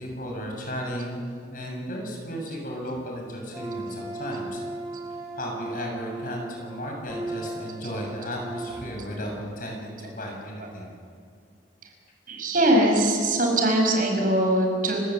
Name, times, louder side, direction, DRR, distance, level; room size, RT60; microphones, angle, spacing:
voice 1, 0.0-4.6 5.4-10.9, equal, 50° left, 1 dB, 7.2 m, -34 dB
sound 1, 3.5-8.9, right 2 dB, 15° right, 6.0 m, -36 dB
voice 2, 12.3-15.0, right 1 dB, 50° right, 2 dB, 5.3 m, -21 dB
30.0 x 17.5 x 7.8 m, 2.3 s
head